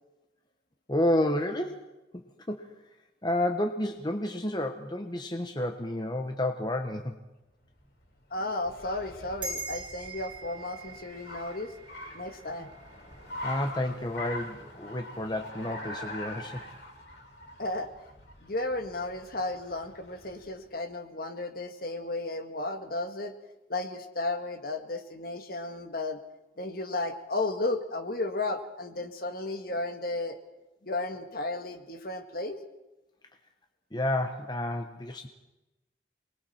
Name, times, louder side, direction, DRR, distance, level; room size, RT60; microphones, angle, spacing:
voice 1, 0.9-1.9 2.1-2.8 3.2-7.2 12.6-12.7 13.4-16.6 33.9-35.3, left 1 dB, 20° left, 4 dB, 1.0 m, -30 dB
Car, 7.6-20.5, left 1 dB, 70° left, 5.6 m, -44 dB
voice 2, 8.3-11.7 12.1-12.7 17.6-17.9 18.4-23.3 23.7-26.2 26.6-30.4 30.8-32.6, left 2 dB, 50° left, 7 dB, 1.7 m, -34 dB
sound 1, 9.4-14.1, right 3 dB, 25° right, 2.5 m, -43 dB
28.5 x 21.0 x 4.4 m, 1.0 s
head